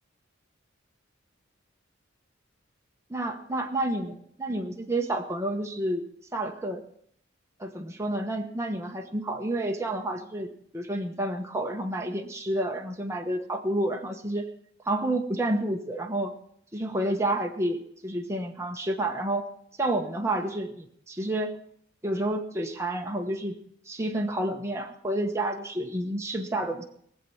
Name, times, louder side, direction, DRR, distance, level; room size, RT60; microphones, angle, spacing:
voice 1, 3.1-6.0 6.3-6.8 7.6-14.5 14.8-16.3 16.7-19.4 19.8-21.6 22.0-23.6 23.9-26.8, right 1 dB, 15° right, 2 dB, 1.1 m, -30 dB
21.5 x 7.6 x 5.7 m, 0.68 s
head